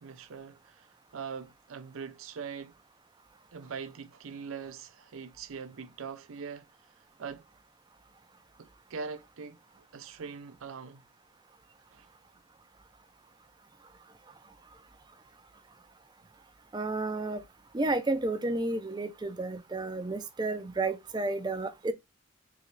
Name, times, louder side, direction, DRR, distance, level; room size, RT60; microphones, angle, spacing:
voice 1, 0.0-2.7 3.5-6.7 7.2-7.4 8.6-11.1 11.9-12.1, right 6 dB, 80° right, 0.5 m, -42 dB
voice 2, 16.7-17.4 17.7-21.9, right 2 dB, 20° right, 0.4 m, -31 dB
3.8 x 3.1 x 3.1 m
head